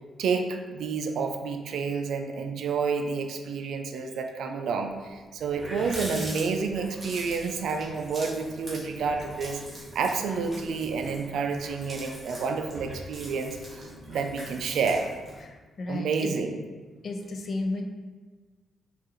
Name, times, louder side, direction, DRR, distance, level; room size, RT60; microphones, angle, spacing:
voice 1, 0.2-9.6 9.9-13.8 14.1-15.1 15.9-16.6, right 5 dB, 80° right, 5 dB, 0.3 m, -29 dB
Water tap faucet, 5.0-5.1 5.3-15.4, right 1 dB, 25° right, 1.2 m, -42 dB
voice 2, 15.4-16.3 17.0-17.8, left 2 dB, 45° left, 4 dB, 0.4 m, -33 dB
4.7 x 2.4 x 3.0 m, 1.3 s
cardioid pair, 135°, 0 cm